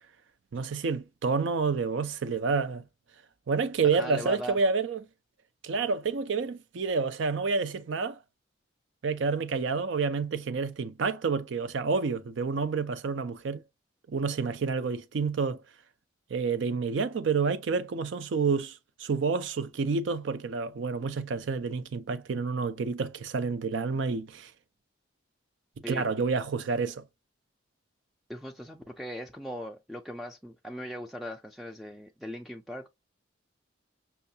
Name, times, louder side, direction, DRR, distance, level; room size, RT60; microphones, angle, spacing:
voice 1, 0.5-2.8 3.5-5.0 5.6-8.2 9.0-13.6 14.1-15.6 16.3-24.5 25.9-27.0, right 4 dB, 75° right, 0.4 m, -29 dB
voice 2, 3.9-4.6 25.8-26.0 28.3-32.9, equal, ahead, 0.3 m, -39 dB
5.6 x 2.2 x 2.7 m
head